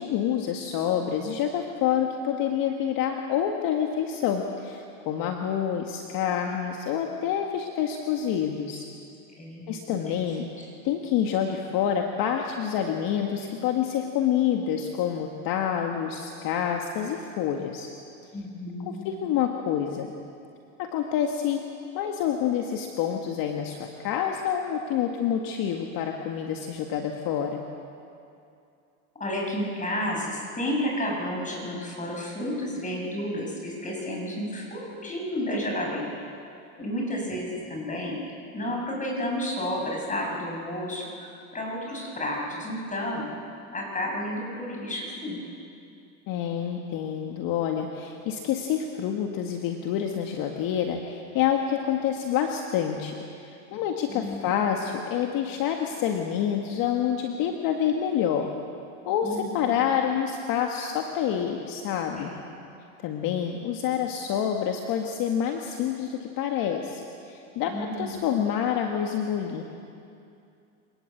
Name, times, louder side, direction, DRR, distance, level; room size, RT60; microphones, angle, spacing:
voice 1, 0.0-8.9 9.7-10.5 10.8-17.9 18.9-20.1 20.8-21.7 21.9-27.6 46.3-58.5 59.1-62.3 63.0-69.6, left 9 dB, 50° left, 3 dB, 1.9 m, -27 dB
voice 2, 9.4-10.2 18.3-19.0 29.2-36.1 36.8-38.2 38.5-43.3 43.7-45.4 54.1-54.4 59.2-59.6 62.2-62.4 67.6-68.3, left 1 dB, 20° left, -1 dB, 7.5 m, -31 dB
25.5 x 19.0 x 8.0 m, 2.6 s
hypercardioid pair, 105°, 42 cm